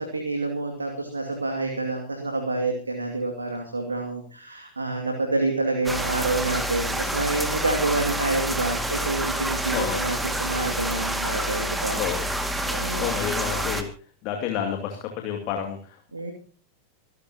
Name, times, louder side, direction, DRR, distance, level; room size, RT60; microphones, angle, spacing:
voice 1, 0.0-12.0 12.6-13.2 16.1-16.3, right 2 dB, 80° right, 3 dB, 2.4 m, -28 dB
sound 1, 5.9-13.8, right 1 dB, 5° right, 2.1 m, -28 dB
voice 2, 13.0-13.9 14.2-16.0, left 9 dB, 40° left, 3 dB, 2.6 m, -29 dB
25.0 x 13.5 x 2.9 m, 0.39 s
figure-of-eight pair, 90°, 0 cm